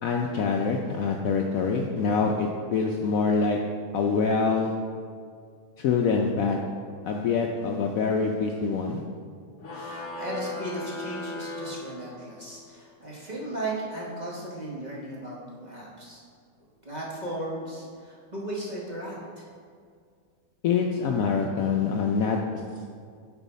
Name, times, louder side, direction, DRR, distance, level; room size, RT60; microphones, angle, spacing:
voice 1, 0.0-3.6 3.9-4.7 5.8-6.6 7.0-9.0 20.6-22.4, left 5 dB, 70° left, 1 dB, 0.8 m, -25 dB
sound 1, 9.6-12.5, left 2 dB, 50° left, 1.2 m, -37 dB
voice 2, 9.7-16.2 16.8-19.5, right 1 dB, 30° right, -5 dB, 1.1 m, -36 dB
8.9 x 4.7 x 4.1 m, 2.1 s
omnidirectional pair, 1.8 m